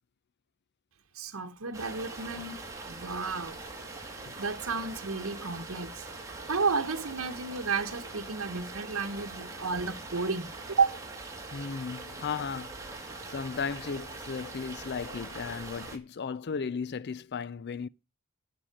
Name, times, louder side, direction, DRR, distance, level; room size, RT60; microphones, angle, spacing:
voice 1, 1.1-3.6 4.4-6.0 6.5-11.0, right 4 dB, 70° right, 1.2 m, -32 dB
sound 1, 1.7-16.0, right 3 dB, 15° right, 2.4 m, -42 dB
voice 2, 11.5-17.9, left 5 dB, 50° left, 0.5 m, -36 dB
11.5 x 5.7 x 8.9 m
head